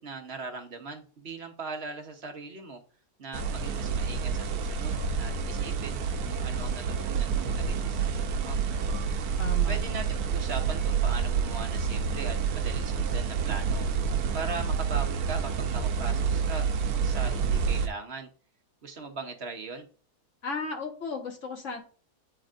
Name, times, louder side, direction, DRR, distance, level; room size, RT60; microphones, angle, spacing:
voice 1, 0.0-2.8 3.2-8.6 9.7-13.9 14.3-16.7 17.0-18.3 18.8-19.9, right 4 dB, 45° right, 5 dB, 1.1 m, -39 dB
sound 1, 3.3-17.9, right 6 dB, 75° right, 1.2 m, -28 dB
voice 2, 9.4-9.8 20.4-21.8, left 4 dB, 50° left, 2 dB, 1.7 m, -35 dB
8.5 x 4.4 x 2.5 m, 0.39 s
omnidirectional pair, 1.7 m